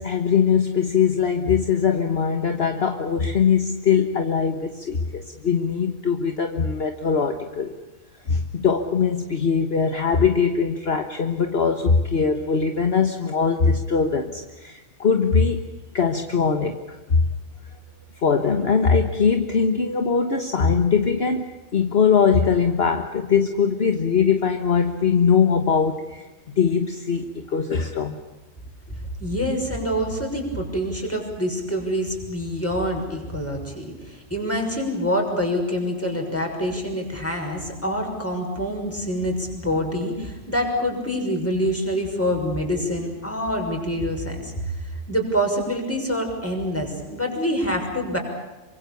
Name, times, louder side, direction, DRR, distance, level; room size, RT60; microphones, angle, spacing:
voice 1, 0.0-7.7 8.3-15.6 15.9-17.3 18.2-26.3 26.5-28.2, left 6 dB, 50° left, 6 dB, 1.6 m, -21 dB
voice 2, 29.2-48.2, equal, 10° left, 2 dB, 6.3 m, -26 dB
27.0 x 25.0 x 7.0 m, 1.1 s
omnidirectional pair, 1.3 m